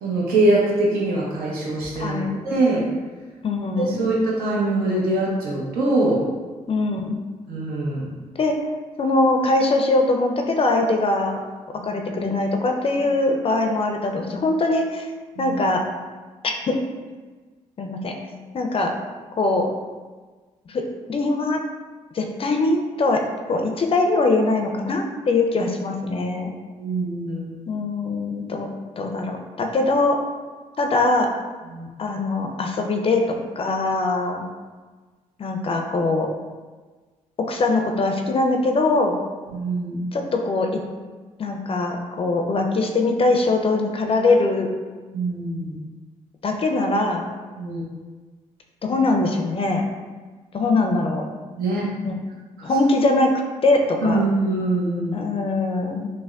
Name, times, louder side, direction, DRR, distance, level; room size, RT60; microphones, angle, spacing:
voice 1, 0.0-2.2 2.4-2.9 3.8-6.2 7.5-8.1 15.4-15.5 26.8-27.5 31.6-31.9 39.5-40.1 45.1-45.8 47.6-47.8 51.6-51.9 52.6-52.7 54.0-55.2, right 2 dB, 85° right, -4 dB, 0.7 m, -23 dB
voice 2, 2.0-2.4 3.4-4.0 6.7-7.2 8.4-8.5 9.0-11.4 11.8-15.1 15.4-15.8 16.7-16.8 17.8-18.1 18.5-18.9 19.4-19.7 20.7-20.8 21.1-21.6 22.1-23.2 23.5-26.5 27.7-28.7 28.9-30.2 30.8-31.3 32.0-34.5 35.4-36.3 37.5-39.2 40.1-40.8 41.4-44.7 46.4-47.2 48.8-49.8 50.5-51.2 52.0-52.2 52.6-53.3 53.6-54.2 55.1-56.1, left 2 dB, 40° left, 3 dB, 0.4 m, -22 dB
3.4 x 2.1 x 2.3 m, 1.4 s
supercardioid pair, 65°, 15 cm